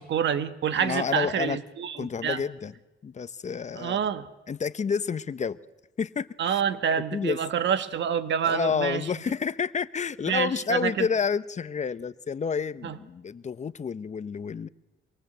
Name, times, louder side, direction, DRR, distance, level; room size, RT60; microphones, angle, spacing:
voice 1, 0.0-2.4 3.7-4.3 6.4-9.0 10.3-11.1 12.8-13.0, right 8 dB, 65° right, 11 dB, 1.5 m, -27 dB
voice 2, 0.8-1.6 2.0-2.7 3.0-4.0 4.5-5.6 6.0-6.6 7.1-7.4 8.4-14.7, left 6 dB, 35° left, 15 dB, 0.8 m, -29 dB
25.5 x 21.5 x 8.0 m, 1.0 s
cardioid pair, 90°, 20 cm